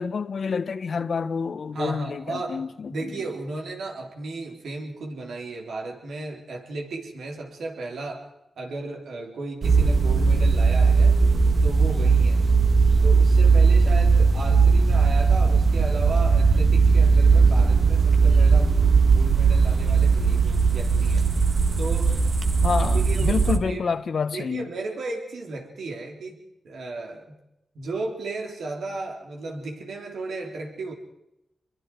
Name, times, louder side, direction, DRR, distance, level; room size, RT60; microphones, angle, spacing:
voice 1, 0.0-3.1 22.6-24.7, left 5 dB, 65° left, 1.2 m, -28 dB
voice 2, 1.7-8.3 8.6-11.2 11.6-12.4 13.0-21.3 21.8-22.2 22.9-23.8 24.3-27.4 27.7-30.9, right 3 dB, 85° right, 4.0 m, -34 dB
sound 1, 9.6-23.6, right 4 dB, 60° right, 1.9 m, -18 dB
28.0 x 23.0 x 4.8 m
cardioid pair, 60°, 0 cm